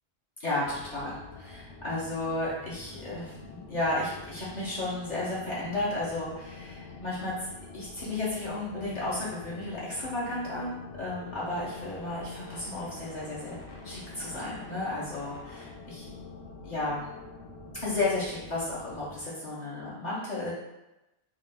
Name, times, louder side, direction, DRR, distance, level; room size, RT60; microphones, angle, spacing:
voice 1, 0.4-16.1 16.6-17.1 17.8-20.5, left 2 dB, 45° left, -8 dB, 0.8 m, -33 dB
sound 1, 0.6-19.2, left 4 dB, 90° left, 0.9 m, -46 dB
2.9 x 2.4 x 3.3 m, 0.96 s
omnidirectional pair, 1.1 m